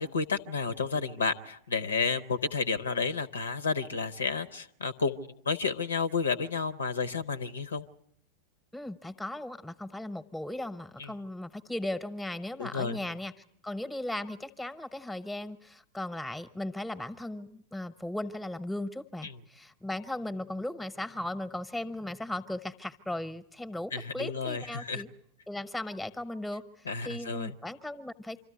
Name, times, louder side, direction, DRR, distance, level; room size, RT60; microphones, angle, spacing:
voice 1, 0.0-7.8 11.0-11.1 12.6-13.0 19.2-19.3 23.9-25.0 26.8-27.5, left 5 dB, 70° left, 13 dB, 0.8 m, -31 dB
voice 2, 8.7-13.3 13.6-25.1 25.5-28.4, left 1 dB, 5° left, 12 dB, 1.0 m, -37 dB
25.5 x 13.5 x 9.5 m, 0.75 s
figure-of-eight pair, 90°, 0 cm